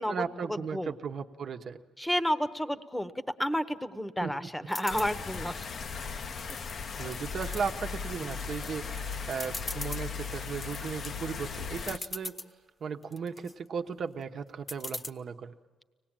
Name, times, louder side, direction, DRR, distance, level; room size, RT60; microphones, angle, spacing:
voice 1, 0.1-1.8 4.2-4.4 7.0-12.4 12.8-15.5, right 6 dB, 55° right, 5 dB, 1.1 m, -36 dB
voice 2, 2.0-5.7 6.1-6.3, equal, 5° left, 12 dB, 1.0 m, -31 dB
sound 1, 4.7-5.1 5.6-6.4 6.8-7.6 8.1-8.6 8.9-9.0 9.3-10.0 10.6-10.9 11.5-11.6 11.8-12.5 13.0-13.5 14.7-15.1, left 2 dB, 30° left, 1.0 m, -40 dB
sound 2, 4.9-12.0, left 5 dB, 55° left, 0.7 m, -37 dB
24.5 x 19.0 x 9.0 m, 1.4 s
cardioid pair, 90°, 0 cm